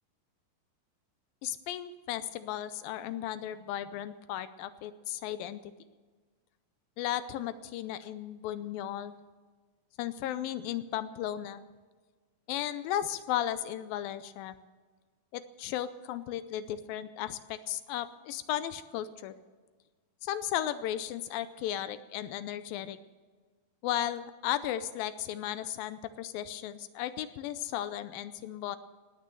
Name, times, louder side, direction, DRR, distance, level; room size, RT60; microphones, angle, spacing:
voice 1, 1.4-5.7 7.0-9.1 10.0-11.6 12.5-14.5 15.3-19.3 20.2-23.0 23.8-28.8, left 11 dB, 80° left, 13 dB, 2.3 m, -35 dB
18.0 x 9.5 x 7.6 m, 1.4 s
omnidirectional pair, 4.3 m